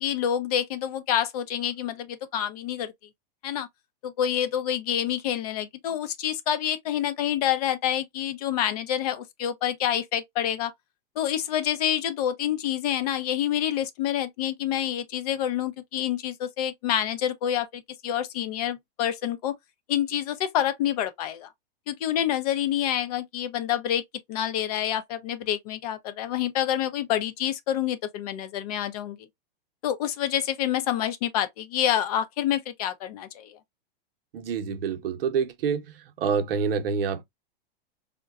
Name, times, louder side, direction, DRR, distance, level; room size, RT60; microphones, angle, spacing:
voice 1, 0.0-2.9 3.4-3.7 4.0-10.7 11.2-19.5 19.9-21.5 21.9-24.0 24.3-29.2 29.8-33.6, left 10 dB, 40° left, 0.5 m, -27 dB
voice 2, 34.3-35.8 36.2-37.2, right 6 dB, 75° right, 0.7 m, -27 dB
3.6 x 2.2 x 2.2 m
supercardioid pair, 155°, 29 cm